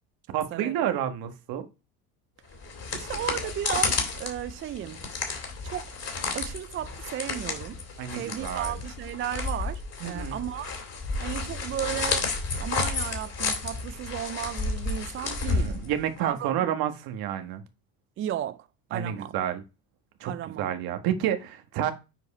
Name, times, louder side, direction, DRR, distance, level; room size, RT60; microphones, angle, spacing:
voice 1, 0.3-1.6 8.0-8.7 10.0-10.4 15.4-17.6 18.9-19.6 20.2-21.9, right 10 dB, 65° right, 1.5 m, -30 dB
sound 1, 2.5-16.2, left 4 dB, 40° left, 3.2 m, -31 dB
voice 2, 2.9-5.1 5.6-5.9 6.3-7.8 8.1-10.7 11.2-12.3 12.6-15.8 16.2-16.7 18.2-19.3 20.2-20.7, right 11 dB, 35° right, 0.4 m, -34 dB
7.8 x 4.8 x 4.2 m
supercardioid pair, 80°, 39 cm